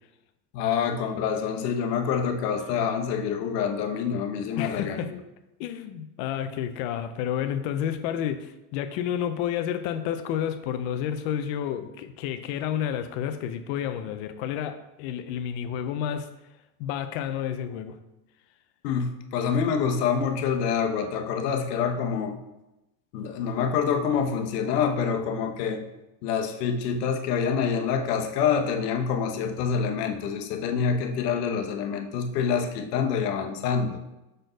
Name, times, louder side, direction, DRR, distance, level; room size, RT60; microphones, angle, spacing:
voice 1, 0.5-5.2 18.8-22.4 23.1-25.8 26.2-34.0, left 6 dB, 75° left, 4 dB, 1.0 m, -26 dB
voice 2, 4.6-5.1 5.6-16.3 16.8-18.0, left 9 dB, 45° left, 9 dB, 0.5 m, -30 dB
6.6 x 4.1 x 3.9 m, 0.95 s
supercardioid pair, 165°, 48 cm